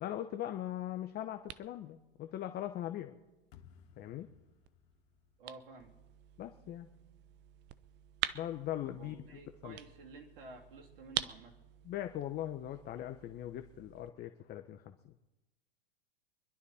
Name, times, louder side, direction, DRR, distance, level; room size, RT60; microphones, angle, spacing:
voice 1, 0.0-3.2 4.0-4.3 6.4-6.9 8.3-9.2 9.6-9.8 11.8-15.1, left 12 dB, 30° left, 7 dB, 0.9 m, -40 dB
sound 1, 0.6-14.1, right 13 dB, 35° right, 0.7 m, -47 dB
sound 2, 3.5-6.6, left 8 dB, 60° left, 1.7 m, -62 dB
voice 2, 5.4-5.9 9.0-11.5, right 3 dB, 65° right, 1 dB, 3.2 m, -52 dB
24.5 x 11.5 x 4.3 m, 1.1 s
hypercardioid pair, 110°, 30 cm